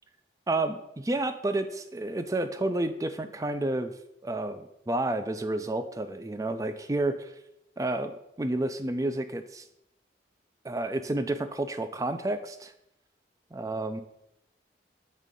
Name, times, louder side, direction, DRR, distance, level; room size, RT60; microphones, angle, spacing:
voice 1, 0.5-3.9 4.2-7.3 7.8-9.6 10.6-12.7 13.5-14.0, right 2 dB, 20° right, 9 dB, 0.4 m, -30 dB
7.4 x 3.7 x 5.2 m, 0.82 s
head